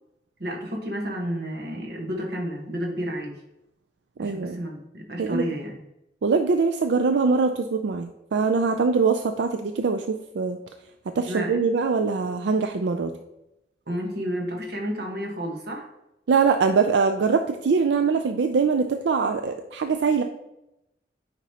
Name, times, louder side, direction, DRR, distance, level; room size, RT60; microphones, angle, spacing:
voice 1, 0.4-3.3 4.2-5.8 11.3-11.6 13.9-15.9, equal, 60° right, 0 dB, 1.4 m, -31 dB
voice 2, 4.2-4.6 5.2-5.4 6.2-10.6 11.2-13.1 16.3-20.2, right 5 dB, 90° right, 6 dB, 0.4 m, -23 dB
9.0 x 5.1 x 2.9 m, 0.89 s
head